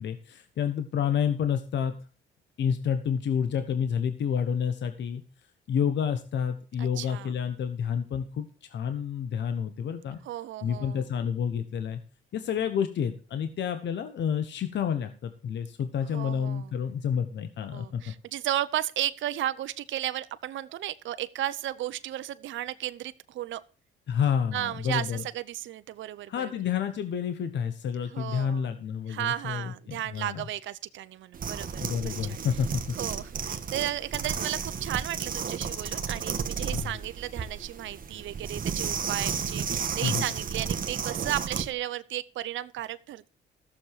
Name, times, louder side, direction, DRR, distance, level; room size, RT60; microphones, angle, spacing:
voice 1, 0.0-1.9 2.6-5.2 5.7-10.2 10.6-12.0 12.3-18.1 24.1-25.2 26.3-30.4 31.8-33.0 36.7-36.9 40.0-40.3, left 7 dB, 65° left, 1.2 m, -29 dB
voice 2, 6.8-7.3 10.3-11.0 16.1-16.7 17.7-23.6 24.5-26.5 28.1-28.6 29.1-32.4 33.0-43.3, right 13 dB, 75° right, 0.7 m, -34 dB
sound 1, 31.3-41.7, right 6 dB, 45° right, 1.4 m, -33 dB
15.0 x 7.1 x 4.8 m
cardioid pair, 90°, 20 cm